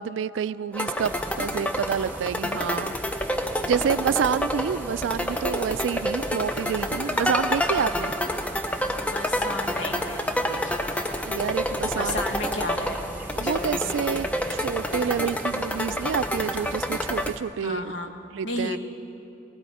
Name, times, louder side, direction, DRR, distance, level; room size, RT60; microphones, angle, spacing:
voice 1, 0.0-1.1 1.4-2.9 3.6-8.1 11.2-12.2 13.3-17.9 18.3-18.8, right 7 dB, 80° right, 17 dB, 0.3 m, -28 dB
sound 1, 0.7-17.3, left 1 dB, 5° left, 0.4 m, -28 dB
voice 2, 0.8-1.4 7.1-7.9 9.1-10.9 11.9-13.0 13.4-14.4 17.6-18.1 18.4-18.8, left 2 dB, 75° left, 4 dB, 1.3 m, -34 dB
sound 2, 1.0-17.4, right 1 dB, 10° right, 0.9 m, -39 dB
19.0 x 16.0 x 4.2 m, 2.8 s
head